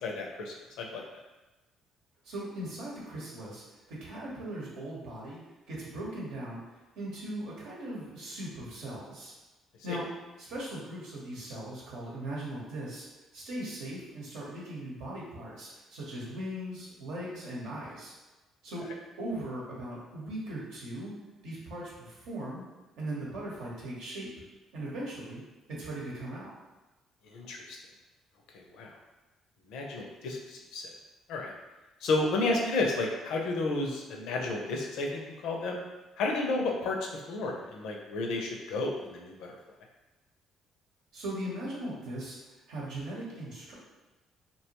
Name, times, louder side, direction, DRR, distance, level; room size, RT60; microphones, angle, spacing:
voice 1, 0.0-1.0 9.9-10.0 27.3-27.8 28.5-28.9 29.7-30.9 31.3-31.5 32.0-35.8 36.2-37.0 37.3-39.6, left 2 dB, 80° left, 1 dB, 0.5 m, -32 dB
voice 2, 2.2-5.4 5.7-6.6 7.0-9.3 9.8-10.1 10.4-13.1 13.3-18.1 18.6-18.9 19.2-21.1 21.4-22.6 23.0-24.3 24.7-25.4 25.7-26.5 41.1-42.4 42.7-43.7, right 1 dB, 80° right, -5 dB, 0.9 m, -39 dB
2.7 x 2.2 x 2.9 m, 1.1 s
supercardioid pair, 70°, 0 cm